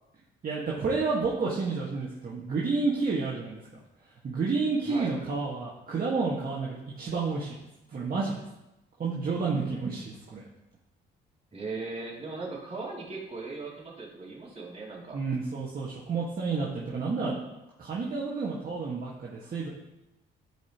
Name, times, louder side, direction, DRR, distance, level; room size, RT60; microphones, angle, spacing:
voice 1, 0.4-3.6 4.2-7.6 7.9-8.3 9.0-10.4 15.1-17.4 17.8-19.7, right 4 dB, 45° right, -5 dB, 1.8 m, -30 dB
voice 2, 11.5-15.2, right 3 dB, 30° right, -4 dB, 3.0 m, -38 dB
14.0 x 5.1 x 3.0 m, 0.92 s
cardioid pair, 90°, 20 cm